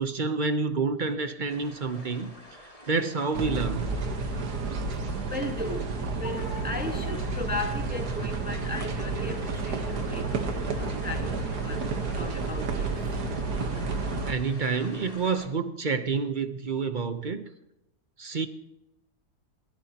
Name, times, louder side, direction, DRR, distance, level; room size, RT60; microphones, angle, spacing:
voice 1, 0.0-3.9 14.2-17.5 18.2-18.5, right 4 dB, 40° right, 9 dB, 0.8 m, -29 dB
sound 1, 1.5-15.5, left 1 dB, 20° left, 2.6 m, -48 dB
sound 2, 3.3-14.3, right 3 dB, 70° right, 1.9 m, -31 dB
voice 2, 5.0-5.9 6.1-11.8 12.1-13.1, left 2 dB, 5° right, 3 dB, 1.2 m, -36 dB
21.5 x 18.5 x 2.9 m, 0.90 s
omnidirectional pair, 1.8 m